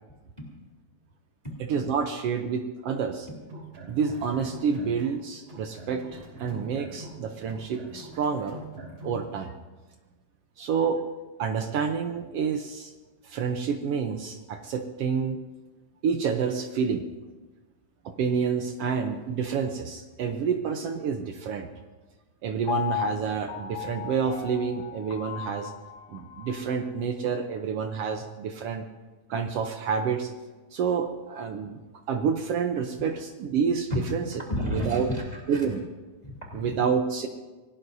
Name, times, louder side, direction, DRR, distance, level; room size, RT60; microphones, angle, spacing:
voice 1, 1.6-3.3 3.9-8.6 9.0-9.5 10.6-11.1 11.4-12.9 13.2-15.4 16.0-17.1 18.0-21.7 22.4-25.7 26.1-28.8 29.3-30.3 30.7-31.8 32.1-34.2 34.7-35.1 35.5-35.8 36.5-37.3, right 6 dB, 75° right, 6 dB, 1.4 m, -28 dB
sound 1, 3.4-5.2 5.5-9.2, right 1 dB, 55° right, 3.9 m, -43 dB
Piano, 22.7-26.8 27.3-27.4, left 11 dB, 70° left, 1.1 m, -35 dB
voice 2, 34.3-35.7 36.2-36.8, left 1 dB, 15° left, -2 dB, 2.8 m, -32 dB
26.5 x 18.5 x 2.7 m, 1.3 s
omnidirectional pair, 3.6 m